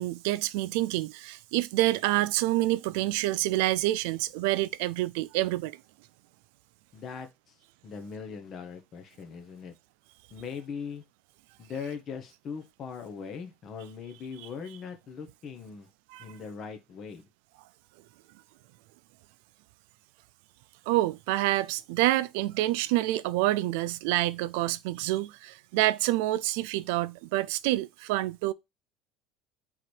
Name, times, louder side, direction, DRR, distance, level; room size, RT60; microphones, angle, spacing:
voice 1, 0.0-5.8 16.1-16.2 20.9-28.5, right 16 dB, 85° right, 0.3 m, -27 dB
voice 2, 6.9-7.6 7.8-9.7 10.3-11.0 11.6-15.9 16.2-17.2, left 6 dB, 35° left, 0.9 m, -40 dB
3.8 x 3.2 x 4.4 m
cardioid pair, 165°, 0 cm